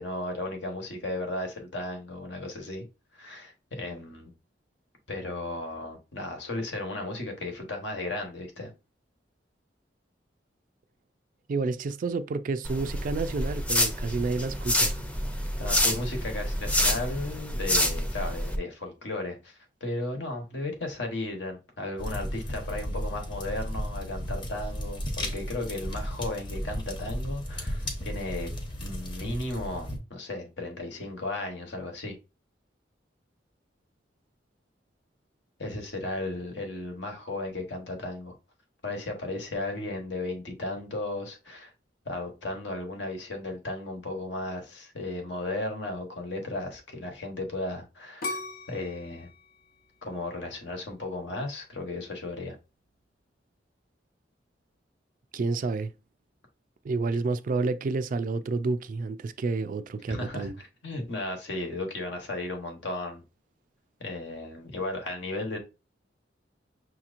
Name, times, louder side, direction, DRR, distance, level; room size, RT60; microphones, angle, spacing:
voice 1, 0.0-2.8 3.1-4.3 5.1-8.7 15.6-28.5 28.8-32.2 35.6-38.3 38.8-41.7 42.0-48.4 48.7-49.3 50.0-52.6 60.1-63.2 64.0-65.6, left 2 dB, 75° left, 1.2 m, -35 dB
voice 2, 11.5-15.0 55.3-55.9 56.8-60.6, right 3 dB, 50° right, 0.3 m, -29 dB
sound 1, 12.6-18.6, left 1 dB, 10° left, 0.6 m, -28 dB
sound 2, 22.0-30.0, equal, 25° left, 0.9 m, -34 dB
sound 3, 48.2-51.1 51.6-52.1, left 2 dB, 55° left, 0.7 m, -39 dB
6.1 x 2.9 x 2.5 m
head